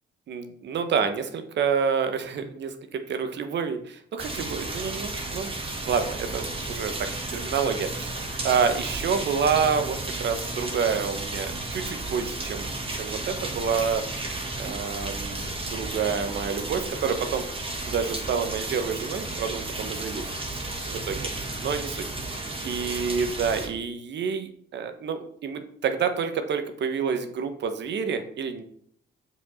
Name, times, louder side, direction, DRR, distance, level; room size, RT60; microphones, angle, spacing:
voice 1, 0.3-5.5 5.9-14.0 14.6-17.4 17.9-21.3 21.6-22.0 22.6-28.6, right 6 dB, 65° right, 8 dB, 1.1 m, -28 dB
sound 1, 4.2-23.7, right 2 dB, 30° right, 2.0 m, -33 dB
7.1 x 5.4 x 4.2 m, 0.62 s
cardioid pair, 90°, 20 cm